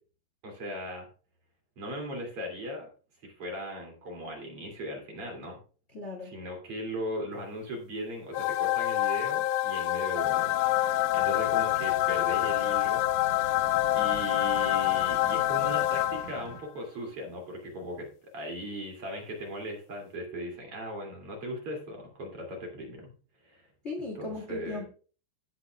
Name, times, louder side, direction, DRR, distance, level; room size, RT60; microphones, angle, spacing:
voice 1, 0.4-1.1 1.8-2.9 3.2-5.6 6.2-13.5 13.9-23.1 23.4-23.7 24.2-24.8, equal, 45° right, 1 dB, 3.5 m, -38 dB
voice 2, 5.9-6.3 11.1-11.2 23.8-24.8, left 2 dB, 25° left, 1 dB, 1.8 m, -37 dB
sound 1, 8.3-16.6, left 16 dB, 80° left, 1.9 m, -27 dB
sound 2, 10.2-16.6, right 7 dB, 85° right, 1.3 m, -45 dB
15.5 x 8.3 x 2.3 m, 0.37 s
omnidirectional pair, 3.7 m